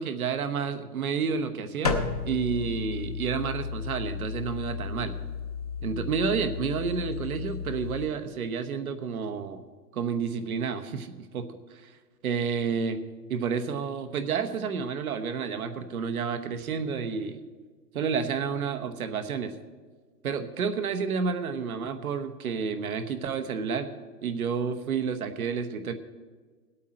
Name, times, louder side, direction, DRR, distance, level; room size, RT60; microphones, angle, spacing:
voice 1, 0.0-2.0 2.2-5.2 5.8-9.6 9.9-11.5 11.8-11.9 12.2-13.0 13.3-17.4 17.9-19.5 20.2-23.9 24.2-25.9, right 6 dB, 60° right, 8 dB, 1.2 m, -30 dB
sound 1, 1.8-8.0, left 5 dB, 25° left, 0.5 m, -33 dB
19.0 x 8.4 x 4.3 m, 1.5 s
hypercardioid pair, 170°, 48 cm